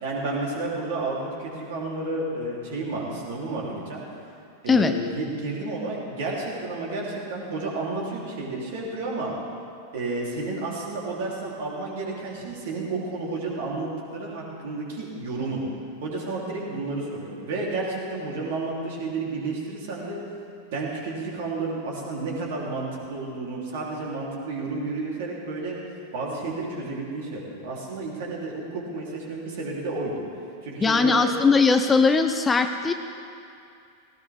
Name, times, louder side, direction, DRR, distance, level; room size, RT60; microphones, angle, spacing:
voice 1, 0.0-4.0 4.6-9.3 9.9-15.6 16.0-20.2 20.7-25.8 26.1-30.2 30.6-31.2, right 3 dB, 55° right, -3 dB, 3.4 m, -31 dB
voice 2, 30.8-32.9, left 4 dB, 15° left, 7 dB, 0.6 m, -20 dB
18.0 x 17.0 x 3.6 m, 2.5 s
figure-of-eight pair, 90°, 0 cm